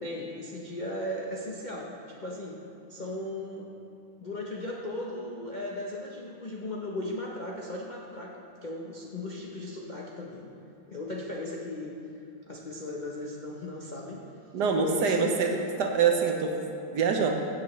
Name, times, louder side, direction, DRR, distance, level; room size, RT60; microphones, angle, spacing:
voice 1, 0.0-2.6 2.9-3.7 4.2-10.5 10.9-12.0 12.5-14.2 14.9-15.4, left 1 dB, 75° left, -3 dB, 0.4 m, -37 dB
voice 2, 14.5-15.5 15.8-16.6 16.9-17.4, right 5 dB, 65° right, 3 dB, 1.2 m, -25 dB
15.5 x 7.9 x 3.1 m, 2.7 s
omnidirectional pair, 2.2 m